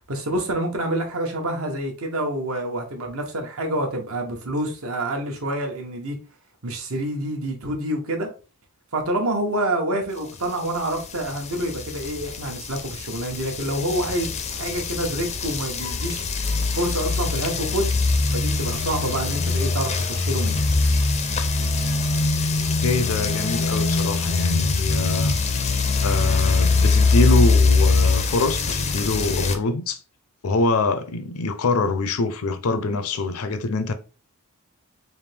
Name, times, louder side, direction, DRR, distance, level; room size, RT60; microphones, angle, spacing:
voice 1, 0.1-6.2 6.6-8.3 8.9-16.2 16.7-17.9 18.3-20.6, right 1 dB, 70° right, 1.0 m, -27 dB
sound 1, 11.0-29.6, left 3 dB, 30° left, 0.4 m, -23 dB
voice 2, 22.8-25.4 26.0-30.0 30.4-33.9, left 3 dB, 80° left, 0.5 m, -24 dB
3.5 x 2.7 x 3.3 m
head